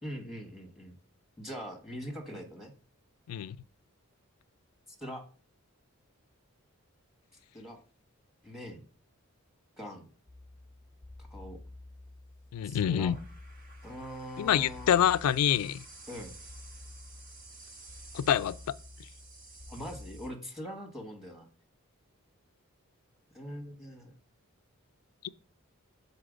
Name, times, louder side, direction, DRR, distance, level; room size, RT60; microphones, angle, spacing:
voice 1, 0.0-1.0 1.4-2.7 5.0-5.2 7.5-7.8 8.4-8.8 9.8-10.1 11.2-11.6 12.6-13.1 13.8-15.0 16.1-16.3 19.7-21.5 23.3-24.1, equal, ahead, 1.2 m, -42 dB
sound 1, 10.3-20.3, equal, 40° right, 1.3 m, -49 dB
voice 2, 12.5-13.2 14.4-15.8 18.1-18.6, left 9 dB, 85° left, 0.3 m, -26 dB
6.6 x 4.2 x 5.0 m
head